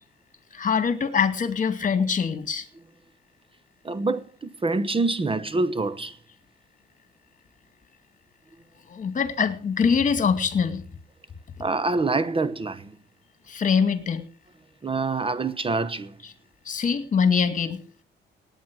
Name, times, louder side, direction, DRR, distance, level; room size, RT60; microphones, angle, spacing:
voice 1, 0.5-2.7 8.9-10.8 13.5-14.3 16.2-16.3 16.7-17.8, left 6 dB, 40° left, 2.1 m, -23 dB
voice 2, 3.8-6.2 11.6-12.9 14.8-16.1, right 3 dB, 25° right, 1.0 m, -26 dB
18.5 x 9.2 x 6.2 m
cardioid pair, 90°, 20 cm